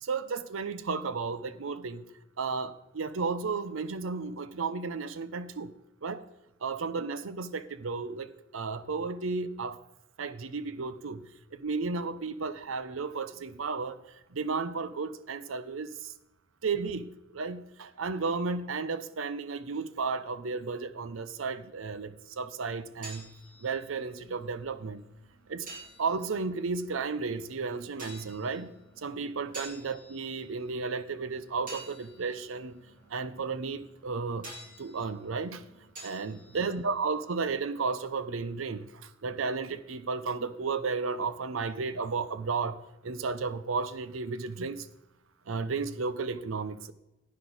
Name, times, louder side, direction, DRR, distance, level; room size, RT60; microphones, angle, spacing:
voice 1, 0.0-2.1 2.4-5.7 6.0-6.2 6.6-9.8 10.2-11.2 11.5-14.0 14.3-16.1 16.6-23.3 23.6-25.0 25.5-25.7 26.0-28.7 29.0-32.8 33.1-34.5 34.8-35.7 36.0-44.9 45.5-46.9, right 4 dB, 75° right, 0.6 m, -33 dB
sound 1, 22.8-38.1, right 2 dB, 40° right, 3.7 m, -51 dB
10.5 x 9.7 x 4.0 m
head